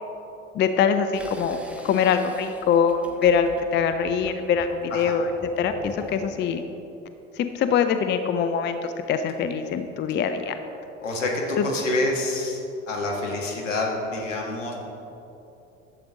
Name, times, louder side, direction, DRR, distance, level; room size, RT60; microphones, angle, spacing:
voice 1, 0.5-1.6 1.8-5.3 5.6-6.6 7.4-10.6 11.6-11.7, left 7 dB, 30° left, 9 dB, 0.5 m, -23 dB
sound 1, 1.1-6.5, left 1 dB, 5° right, 0.9 m, -42 dB
voice 2, 11.0-12.6 12.9-14.7, left 2 dB, 80° left, -1 dB, 1.5 m, -27 dB
12.0 x 7.7 x 3.7 m, 2.9 s
figure-of-eight pair, 65°, 37 cm